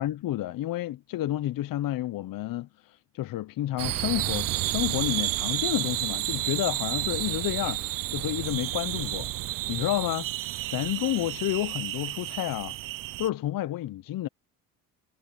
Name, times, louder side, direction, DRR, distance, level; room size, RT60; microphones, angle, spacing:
voice 1, 0.0-10.3 10.7-12.8 13.2-14.3, left 14 dB, 55° left, 0.9 m, -30 dB
sound 1, 3.8-13.3, right 15 dB, 55° right, 0.7 m, -31 dB
hypercardioid pair, 65°, 40 cm